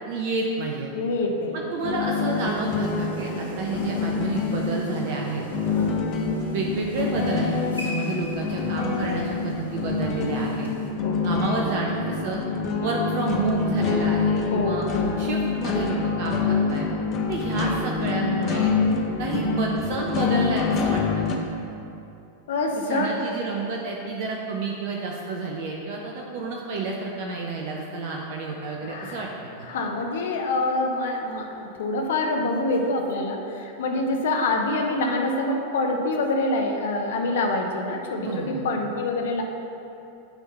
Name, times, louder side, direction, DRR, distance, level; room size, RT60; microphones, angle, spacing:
voice 1, 0.1-0.9 1.5-5.4 6.5-10.7 11.2-12.4 12.8-14.9 15.2-16.9 17.3-18.7 19.2-21.2 22.9-29.3 29.6-29.7 38.2-38.7, right 3 dB, 50° right, -1 dB, 0.7 m, -30 dB
voice 2, 0.9-1.7 5.7-5.9 11.0-11.2 14.5-15.2 22.5-23.1 28.8-29.3 29.7-39.4, left 2 dB, 60° left, 2 dB, 0.8 m, -26 dB
sound 1, 1.8-21.4, left 4 dB, 35° left, 0.8 m, -26 dB
sound 2, 2.2-10.9, equal, 85° left, 1.5 m, -41 dB
9.8 x 3.7 x 5.6 m, 2.7 s
figure-of-eight pair, 90°, 0 cm